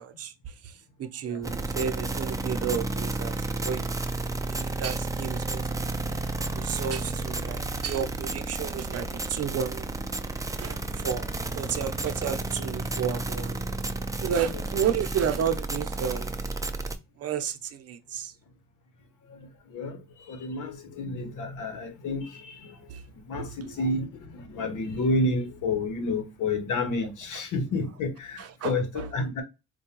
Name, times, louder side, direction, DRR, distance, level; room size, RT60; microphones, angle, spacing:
voice 1, 0.0-3.9 4.5-5.9 6.5-9.8 10.6-13.6 14.2-16.4 17.2-18.3 22.9-23.0 23.3-23.7 27.3-27.4 28.4-29.1, right 8 dB, 55° right, 0.7 m, -32 dB
sound 1, 1.4-16.9, right 2 dB, 10° right, 0.4 m, -32 dB
voice 2, 20.3-20.7 21.0-22.2 23.3-24.0 24.5-28.4 28.6-28.9 29.1-29.4, left 2 dB, 80° left, 1.0 m, -29 dB
4.5 x 2.3 x 2.9 m
cardioid pair, 90°, 30 cm